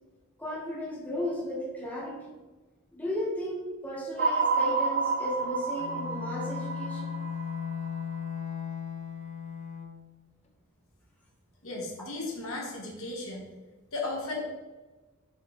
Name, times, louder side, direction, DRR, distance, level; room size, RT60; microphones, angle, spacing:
voice 1, 0.4-2.3 2.9-7.2, equal, 10° left, -5 dB, 1.0 m, -35 dB
sound 1, 4.2-8.4, right 4 dB, 50° right, 0.4 m, -30 dB
Bowed string instrument, 5.8-10.1, left 7 dB, 30° left, 0.4 m, -37 dB
voice 2, 11.6-13.5 13.9-14.4, left 2 dB, 70° left, -1 dB, 1.1 m, -35 dB
5.0 x 2.5 x 4.0 m, 1.2 s
head